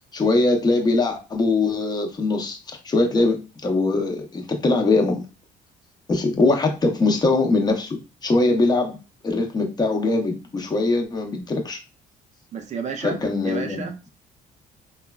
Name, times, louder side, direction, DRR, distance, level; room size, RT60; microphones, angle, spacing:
voice 1, 0.1-5.2 6.1-9.0 9.2-11.8 13.0-13.9, left 3 dB, 25° left, 3 dB, 0.6 m, -22 dB
voice 2, 12.5-14.1, right 5 dB, 45° right, 6 dB, 0.5 m, -32 dB
3.1 x 2.2 x 2.2 m, 0.31 s
cardioid pair, 110°, 17 cm